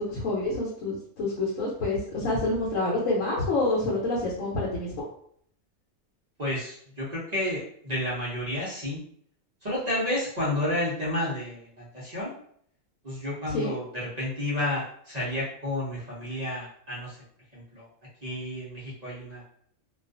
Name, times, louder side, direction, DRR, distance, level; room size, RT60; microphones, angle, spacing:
voice 1, 0.0-4.9 13.5-13.8, left 2 dB, 75° left, -5 dB, 1.0 m, -27 dB
voice 2, 6.4-9.0 9.6-12.3 13.0-17.2 17.5-17.9 18.2-19.4, left 1 dB, 40° right, -7 dB, 0.6 m, -31 dB
2.3 x 2.3 x 2.4 m, 0.64 s
omnidirectional pair, 1.4 m